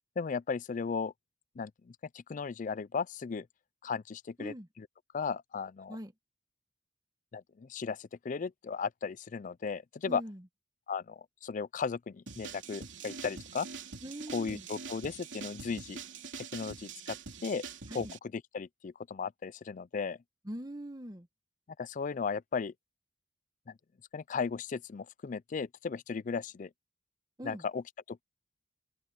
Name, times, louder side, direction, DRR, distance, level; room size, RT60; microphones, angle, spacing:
voice 1, 0.2-1.1 1.6-3.5 3.8-4.9 5.1-6.0 7.3-10.2 10.9-13.7 14.3-16.0 16.4-17.2 17.4-17.6 17.9-20.2 21.8-22.7 23.7-23.8 24.1-26.7 27.4-27.8 28.1-28.2, left 5 dB, 45° left, 0.4 m, -36 dB
voice 2, 10.0-10.4 14.0-14.6 17.9-18.1 20.4-21.3 27.4-27.7, right 1 dB, 20° right, 1.4 m, -42 dB
sound 1, 12.3-18.2, right 5 dB, 90° right, 3.2 m, -44 dB
head